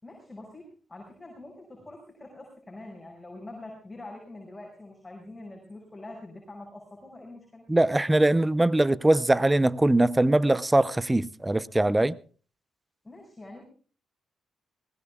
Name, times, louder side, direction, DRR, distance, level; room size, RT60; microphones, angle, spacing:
voice 1, 0.0-7.6 13.0-13.6, left 2 dB, 20° left, 5.9 m, -45 dB
voice 2, 7.7-12.2, right 1 dB, 15° right, 0.6 m, -22 dB
21.0 x 19.0 x 2.3 m
cardioid pair, 70°, 0 cm